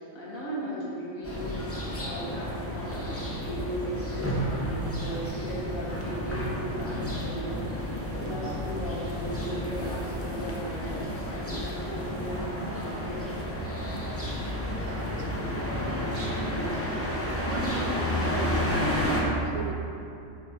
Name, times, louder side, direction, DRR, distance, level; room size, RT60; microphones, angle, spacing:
voice 1, 0.0-1.6 2.0-7.9 8.2-13.5, equal, 85° left, -6 dB, 2.1 m, -37 dB
sound 1, 1.2-19.2, equal, 10° left, 0.8 m, -31 dB
voice 2, 14.7-17.1 17.5-19.7, right 4 dB, 70° right, 3 dB, 1.0 m, -40 dB
9.1 x 6.8 x 2.9 m, 2.7 s
omnidirectional pair, 1.4 m